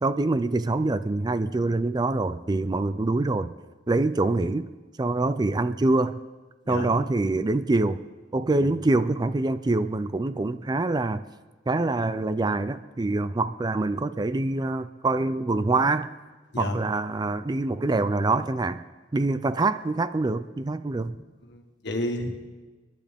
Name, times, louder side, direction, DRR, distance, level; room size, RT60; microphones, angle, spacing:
voice 1, 0.0-3.5 3.9-4.7 5.0-6.2 6.7-8.0 8.3-11.2 11.7-16.1 16.6-18.8 19.1-21.2, right 2 dB, 20° right, 13 dB, 0.4 m, -25 dB
voice 2, 21.5-22.5, left 1 dB, 65° left, 3 dB, 1.8 m, -31 dB
29.5 x 11.0 x 3.5 m, 1.3 s
head